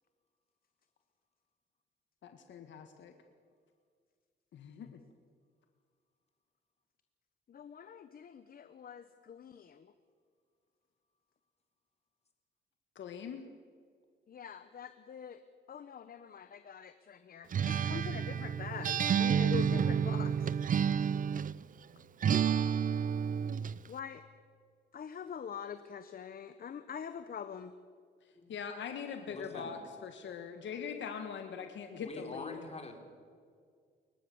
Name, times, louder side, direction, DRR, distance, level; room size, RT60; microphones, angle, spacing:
voice 1, 2.2-3.1 4.5-5.0 13.0-13.4 28.5-32.6, left 6 dB, 65° left, 6 dB, 1.6 m, -42 dB
voice 2, 7.5-9.9 14.3-15.4 15.7-20.5 23.9-24.2 24.9-27.7, left 7 dB, 50° left, 11 dB, 1.0 m, -44 dB
Acoustic guitar, 17.5-21.6 22.2-23.8, right 7 dB, 45° right, 0.6 m, -30 dB
voice 3, 29.3-29.8 32.0-33.0, left 3 dB, 30° left, 4 dB, 4.1 m, -45 dB
29.0 x 15.0 x 7.1 m, 2.1 s
cardioid pair, 90°, 20 cm